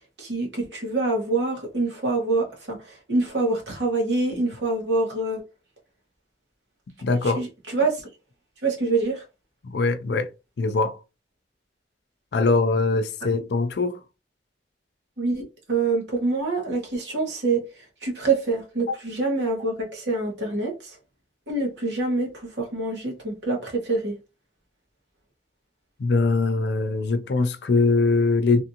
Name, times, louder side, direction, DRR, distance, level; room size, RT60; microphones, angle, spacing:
voice 1, 0.2-5.4 7.1-8.1 8.6-9.2 15.2-21.0 21.5-24.1, right 3 dB, 80° right, 1.3 m, -26 dB
voice 2, 7.0-7.4 9.6-10.3 10.6-11.0 12.3-14.0 18.9-19.0 26.0-28.6, left 3 dB, 70° left, 0.4 m, -22 dB
3.4 x 2.5 x 2.8 m
head